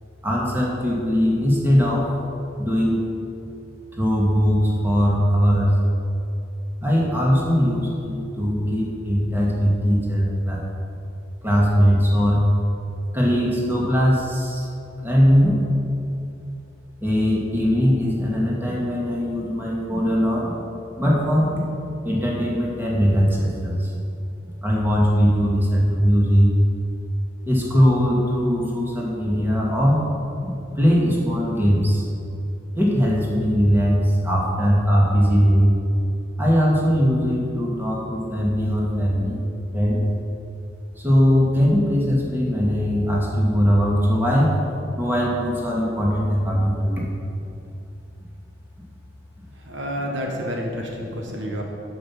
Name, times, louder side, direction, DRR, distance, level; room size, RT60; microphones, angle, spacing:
voice 1, 0.2-2.1 2.6-3.0 3.9-5.8 6.8-10.6 11.4-12.4 13.1-14.7 15.0-15.6 17.0-20.6 21.0-21.7 22.0-24.0 24.6-26.5 27.5-30.0 30.4-32.0 32.7-35.7 36.4-39.4 39.7-40.0 41.0-44.5 45.0-47.1, equal, 10° right, -4 dB, 1.9 m, -20 dB
voice 2, 49.5-51.6, equal, 65° right, 0 dB, 1.4 m, -29 dB
10.0 x 5.9 x 7.2 m, 2.6 s
head